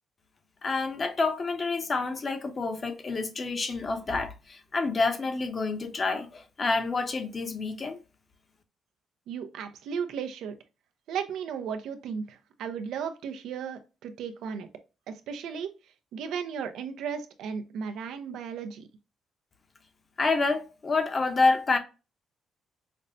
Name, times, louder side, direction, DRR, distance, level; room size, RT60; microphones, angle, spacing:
voice 1, 0.6-8.0 20.2-21.8, left 3 dB, 35° left, 0.9 m, -28 dB
voice 2, 9.3-10.5 11.1-14.7 15.1-15.7 16.1-18.9, right 7 dB, 85° right, 0.6 m, -35 dB
5.2 x 2.1 x 2.6 m
cardioid pair, 90°, 0 cm